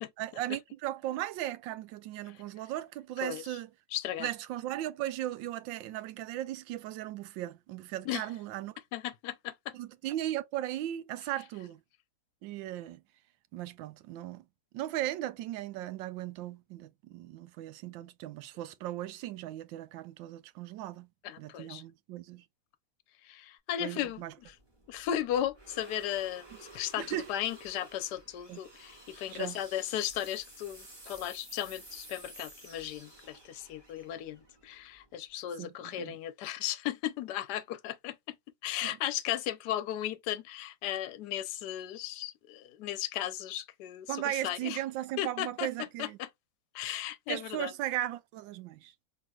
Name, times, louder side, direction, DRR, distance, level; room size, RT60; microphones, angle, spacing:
voice 1, 0.2-3.7 4.2-8.7 9.7-11.8 12.4-13.0 13.5-14.4 14.7-21.1 21.4-22.4 23.8-24.3 27.0-27.3 28.5-28.6 29.3-29.6 35.6-36.1 38.8-39.0 44.1-46.2 47.3-48.9, right 13 dB, 90° right, 1.3 m, -37 dB
voice 2, 3.9-4.3 8.1-8.2 8.9-9.7 21.2-21.8 23.2-24.5 24.9-38.4 38.6-44.8 45.2-45.7 46.0-46.3 46.7-47.7, left 11 dB, 70° left, 1.1 m, -36 dB
sound 1, 24.1-35.3, right 2 dB, 15° right, 2.3 m, -53 dB
4.4 x 3.5 x 2.2 m
omnidirectional pair, 2.0 m